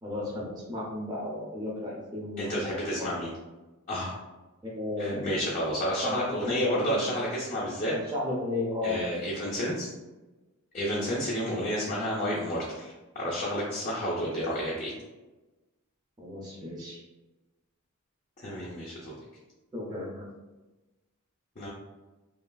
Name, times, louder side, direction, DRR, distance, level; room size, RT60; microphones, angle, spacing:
voice 1, 0.0-3.2 4.6-5.3 6.1-7.0 7.9-9.0 11.5-11.7 16.2-17.0 19.7-20.3, left 2 dB, 20° right, -4 dB, 0.5 m, -34 dB
voice 2, 2.4-3.3 3.9-4.2 5.0-8.0 8.8-9.9 10.7-14.9 18.4-19.1 21.6-21.7, equal, 35° left, -7 dB, 0.5 m, -30 dB
3.0 x 2.3 x 2.3 m, 1.1 s
head